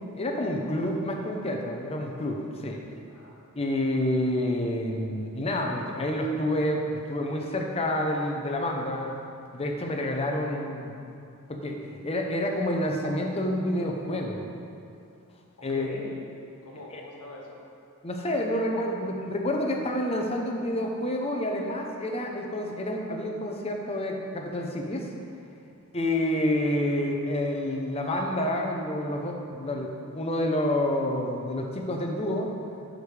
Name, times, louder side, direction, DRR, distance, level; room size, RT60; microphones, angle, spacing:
voice 1, 0.0-2.8 3.6-9.2 9.5-11.0 11.5-14.5 15.6-15.9 16.9-17.0 18.0-25.1 25.9-32.5, left 1 dB, 25° left, 1 dB, 0.7 m, -28 dB
voice 2, 3.1-3.5 15.6-16.3 16.6-17.6, left 2 dB, 85° left, -2 dB, 1.4 m, -43 dB
11.0 x 5.2 x 3.3 m, 2.5 s
head